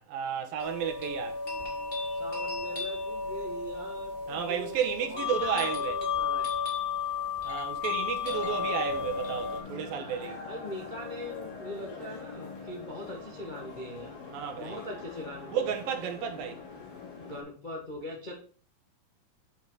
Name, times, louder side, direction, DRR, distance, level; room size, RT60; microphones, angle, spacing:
voice 1, 0.0-1.4 4.3-6.0 7.4-10.4 14.3-14.8 15.5-16.6, right 8 dB, 80° right, 2.9 m, -32 dB
sound 1, 0.6-9.6, left 5 dB, 20° left, 1.7 m, -33 dB
voice 2, 2.1-4.7 5.0-6.6 10.5-14.2 14.6-15.7 17.2-18.3, left 1 dB, 45° left, 0.6 m, -41 dB
sound 2, 8.3-17.4, left 4 dB, 85° left, 4.1 m, -44 dB
9.3 x 5.3 x 4.0 m
omnidirectional pair, 4.0 m